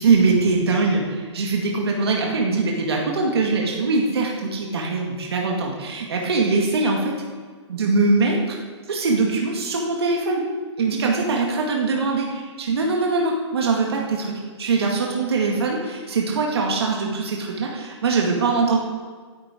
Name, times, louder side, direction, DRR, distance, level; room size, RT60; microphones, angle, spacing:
voice 1, 0.0-7.1 7.7-8.6 8.9-10.4 10.8-17.7 18.0-18.8, right 3 dB, 55° right, -1 dB, 2.0 m, -22 dB
10.5 x 6.5 x 9.1 m, 1.5 s
hypercardioid pair, 180°, 15 cm